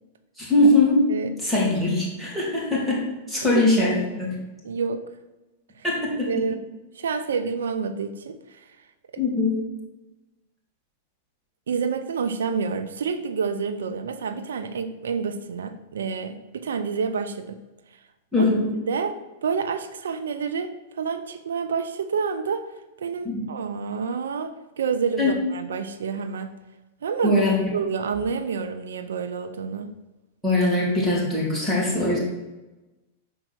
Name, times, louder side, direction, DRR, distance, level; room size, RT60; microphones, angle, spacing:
voice 1, 0.4-1.0 1.4-3.0 3.3-4.4 5.8-6.3 9.2-9.6 18.3-18.7 23.2-23.4 25.2-25.3 27.2-27.6 30.4-32.2, left 2 dB, 5° right, -4 dB, 2.8 m, -21 dB
voice 2, 4.6-5.0 6.3-6.6 6.9-8.8 11.7-17.6 18.4-18.5 18.9-22.7 23.0-26.6 27.0-27.4 27.7-29.9, right 5 dB, 90° right, 10 dB, 0.5 m, -28 dB
6.1 x 4.5 x 6.2 m, 1.1 s
hypercardioid pair, 120°, 0 cm